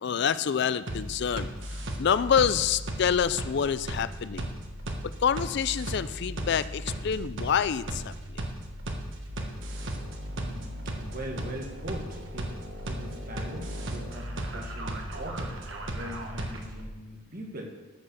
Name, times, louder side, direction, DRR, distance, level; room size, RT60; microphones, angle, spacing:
voice 1, 0.0-4.5 5.2-8.1, left 7 dB, 60° left, 15 dB, 0.4 m, -27 dB
sound 1, 0.9-16.8, right 1 dB, 70° right, 1.5 m, -36 dB
voice 2, 10.3-17.7, equal, 45° right, 1 dB, 1.8 m, -41 dB
12.5 x 5.7 x 6.9 m, 1.2 s
head